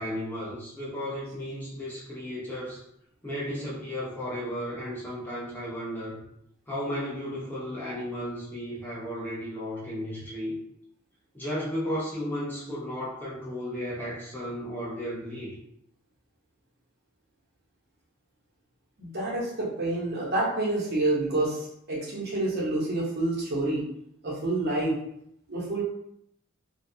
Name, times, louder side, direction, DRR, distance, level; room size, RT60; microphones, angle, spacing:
voice 1, 0.0-2.8 3.2-6.2 6.7-10.6 11.3-15.6, equal, 10° left, -8 dB, 0.6 m, -34 dB
voice 2, 19.0-23.8 24.2-25.0 25.5-25.8, right 2 dB, 50° right, -5 dB, 0.8 m, -28 dB
2.3 x 2.3 x 2.6 m, 0.74 s
head